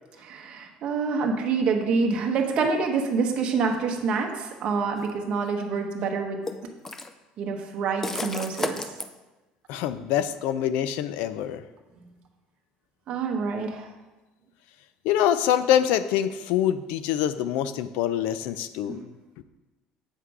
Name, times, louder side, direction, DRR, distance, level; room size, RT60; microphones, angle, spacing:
voice 1, 0.2-6.4 7.4-8.8 13.1-13.9 18.9-19.0, right 4 dB, 40° right, 2 dB, 1.0 m, -27 dB
sound 1, 5.0-5.1 6.5-7.1 8.0-9.1, left 3 dB, 15° left, 0.4 m, -32 dB
voice 2, 9.7-11.6 15.0-19.0, left 10 dB, 75° left, 13 dB, 0.5 m, -25 dB
8.1 x 5.8 x 4.8 m, 1.1 s
cardioid pair, 165°, 3 cm